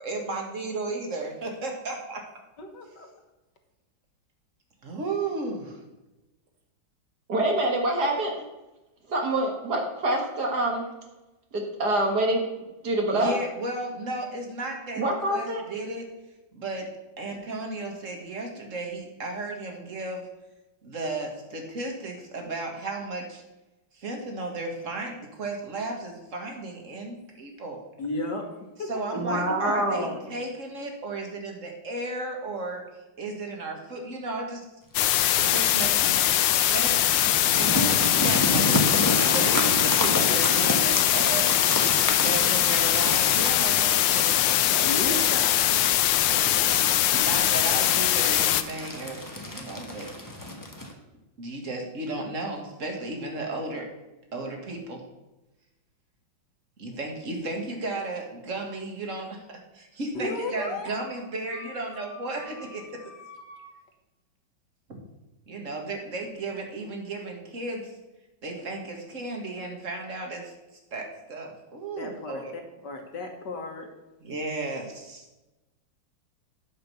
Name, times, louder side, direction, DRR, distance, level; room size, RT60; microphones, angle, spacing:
voice 1, 0.0-2.2 4.8-5.8 13.1-15.0 15.3-16.1 16.5-16.9 17.2-20.2 20.8-23.4 23.9-27.8 28.9-32.8 33.2-34.6 35.3-36.2 36.7-37.0 37.5-41.5 42.2-45.3 46.3-46.6 47.0-50.1 51.4-53.9 54.3-55.0 56.8-62.8 64.9-65.0 65.5-67.9 68.4-70.5 70.9-72.5 74.2-75.3, right 2 dB, 40° right, 2 dB, 1.9 m, -34 dB
voice 2, 2.6-3.1 28.0-28.5 28.8-29.2 29.9-30.2 44.8-45.8 46.3-46.9 60.1-61.2 61.5-63.7 72.0-73.9, left 2 dB, 60° left, 3 dB, 1.9 m, -36 dB
voice 3, 7.3-8.3 9.1-10.8 11.5-12.4 12.8-13.4 14.9-15.6 29.2-30.2, right 1 dB, 55° right, 1 dB, 2.0 m, -25 dB
sound 1, 34.9-48.6, left 12 dB, 80° left, 1.3 m, -22 dB
sound 2, 36.8-50.9, left 1 dB, 15° left, 0.7 m, -31 dB
9.7 x 5.3 x 6.8 m, 1.0 s
omnidirectional pair, 2.1 m